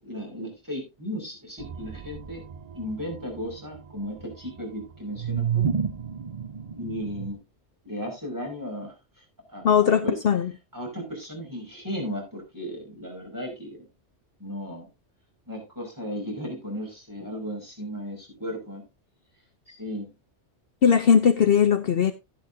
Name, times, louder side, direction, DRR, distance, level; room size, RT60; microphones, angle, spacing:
voice 1, 0.0-2.4 2.7-5.7 6.7-7.4 7.8-9.2 9.5-10.2 10.7-13.9 14.4-14.9 15.5-18.8 19.7-20.1, equal, 15° right, 5.4 m, -35 dB
sound 1, 1.6-7.3, right 7 dB, 40° right, 0.7 m, -32 dB
voice 2, 9.6-10.5 20.8-22.1, left 7 dB, 60° left, 0.8 m, -19 dB
13.0 x 10.5 x 2.6 m
omnidirectional pair, 1.2 m